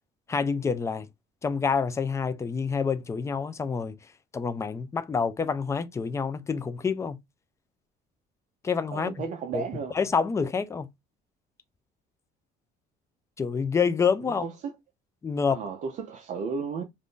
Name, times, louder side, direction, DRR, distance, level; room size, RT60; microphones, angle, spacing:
voice 1, 0.3-1.1 1.4-4.0 4.3-7.2 8.6-9.1 9.5-9.6 9.9-10.9 13.4-14.4 15.2-15.6, left 5 dB, 15° left, 0.3 m, -27 dB
voice 2, 8.9-10.0 14.2-14.7 15.5-16.8, right 5 dB, 45° right, 0.5 m, -34 dB
2.5 x 2.5 x 3.5 m
cardioid pair, 140°, 19 cm